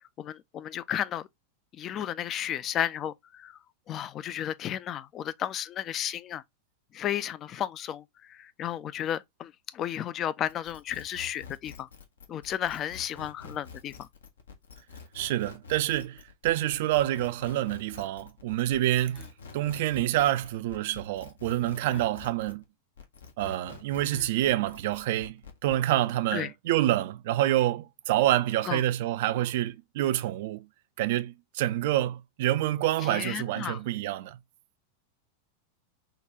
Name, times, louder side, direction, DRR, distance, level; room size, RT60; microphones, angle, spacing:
voice 1, 0.2-1.3 1.7-3.6 3.9-6.4 6.9-11.9 12.3-14.1 21.8-22.0 24.1-24.3 26.3-26.5 28.7-28.8 33.0-33.8, left 10 dB, 30° left, 0.3 m, -33 dB
sound 1, 10.5-22.6 23.0-25.8, left 4 dB, 70° left, 0.7 m, -47 dB
voice 2, 15.1-19.3 19.5-22.6 23.4-30.7 31.0-34.4, right 14 dB, 50° right, 0.3 m, -27 dB
3.7 x 2.3 x 2.7 m
figure-of-eight pair, 90°, 0 cm